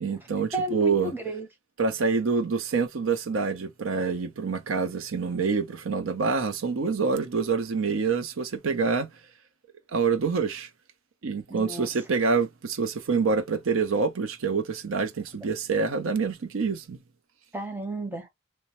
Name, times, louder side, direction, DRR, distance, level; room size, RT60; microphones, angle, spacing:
voice 1, 0.0-1.1 1.8-9.1 9.9-10.7 11.2-17.0, right 5 dB, 70° right, 0.5 m, -26 dB
voice 2, 0.5-1.5 11.5-11.9 17.5-18.3, right 1 dB, 10° right, 0.7 m, -32 dB
3.0 x 2.1 x 2.8 m
head